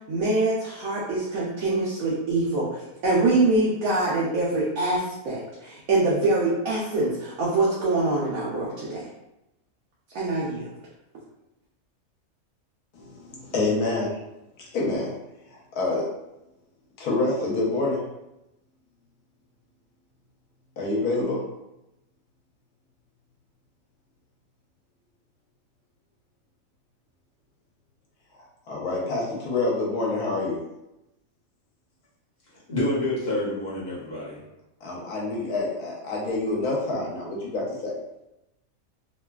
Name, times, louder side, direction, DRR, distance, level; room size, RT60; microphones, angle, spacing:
voice 1, 0.1-9.0 10.1-10.7, right 2 dB, 70° right, -6 dB, 1.0 m, -24 dB
voice 2, 12.9-14.2 14.6-15.1 15.5-16.1 17.0-18.0 20.8-21.4 28.3-30.6 34.8-38.0, left 2 dB, 80° left, -4 dB, 1.3 m, -27 dB
voice 3, 32.7-34.4, left 1 dB, 35° left, -8 dB, 0.8 m, -27 dB
3.1 x 2.2 x 2.3 m, 0.91 s
omnidirectional pair, 1.5 m